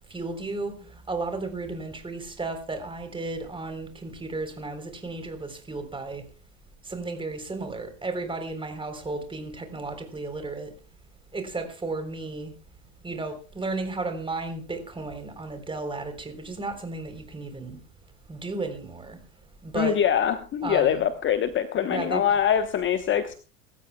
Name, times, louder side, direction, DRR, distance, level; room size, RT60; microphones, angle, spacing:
voice 1, 0.1-6.2 6.8-10.8 11.3-12.5 13.0-17.8 18.3-19.2 19.6-20.0 20.6-21.1 21.8-22.2, right 3 dB, 10° right, 3.8 m, -34 dB
voice 2, 19.7-23.3, left 9 dB, 25° left, 1.1 m, -24 dB
25.5 x 13.5 x 2.3 m
hypercardioid pair, 95°, 47 cm